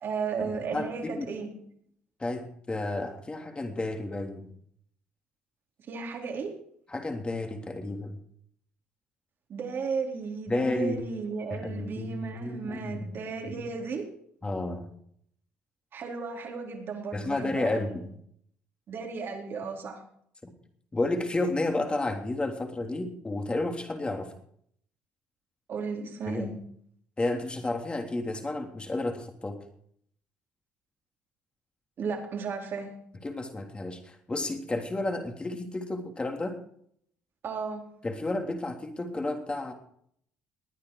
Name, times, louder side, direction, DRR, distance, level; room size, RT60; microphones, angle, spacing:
voice 1, 0.0-1.5 5.9-6.5 9.5-14.1 15.9-18.0 18.9-20.0 25.7-26.5 32.0-32.9 37.4-37.8, right 5 dB, 60° right, 1 dB, 4.3 m, -34 dB
voice 2, 0.7-1.4 2.2-4.5 6.9-8.2 10.5-11.0 11.5-13.1 14.4-14.9 17.1-18.0 20.4-20.5 20.9-24.3 26.2-26.5 27.2-29.6 33.2-36.6 38.0-39.7, left 2 dB, 25° left, 4 dB, 3.2 m, -31 dB
20.5 x 9.6 x 4.9 m, 0.65 s
supercardioid pair, 70°, 4 cm